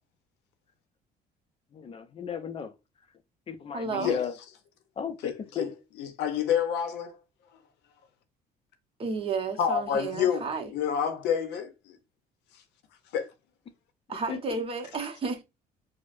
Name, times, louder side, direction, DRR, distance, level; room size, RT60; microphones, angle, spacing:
voice 1, 1.7-2.7 3.5-4.3 5.0-5.7 14.3-14.4, left 7 dB, 35° left, 0.4 m, -35 dB
voice 2, 3.7-4.1 9.0-10.7 14.1-15.4, right 4 dB, 35° right, 0.8 m, -32 dB
voice 3, 5.2-5.7 6.0-7.2 9.6-12.0 13.1-13.3, left 8 dB, 85° left, 0.7 m, -28 dB
4.4 x 2.0 x 2.5 m
cardioid pair, 110°, 17 cm